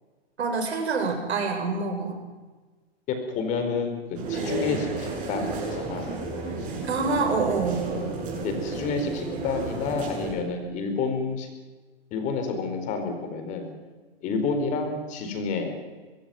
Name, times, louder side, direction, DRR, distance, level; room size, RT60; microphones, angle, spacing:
voice 1, 0.4-2.2 6.8-7.9, right 4 dB, 85° right, 4 dB, 7.9 m, -26 dB
voice 2, 3.1-4.0 4.3-6.1 7.7-7.8 8.4-11.5 12.1-13.7 14.2-15.7, left 4 dB, 25° left, 6 dB, 4.4 m, -29 dB
sound 1, 4.1-10.3, right 3 dB, 25° right, 7.7 m, -32 dB
24.0 x 21.0 x 9.3 m, 1.3 s
hypercardioid pair, 165°, 32 cm